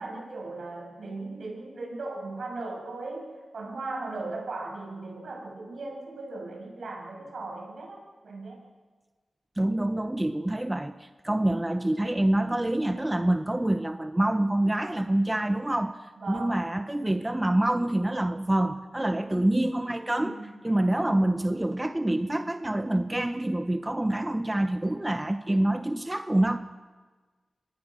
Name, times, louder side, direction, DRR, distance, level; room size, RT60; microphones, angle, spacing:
voice 1, 0.0-8.0 8.2-8.6 16.2-16.7 19.2-19.7 20.2-20.5, right 2 dB, 70° right, 0 dB, 7.4 m, -37 dB
voice 2, 9.6-16.0 16.3-20.4 20.6-26.6, right 1 dB, 20° right, 8 dB, 1.0 m, -26 dB
25.5 x 19.0 x 6.3 m, 1.4 s
cardioid pair, 55°, 0 cm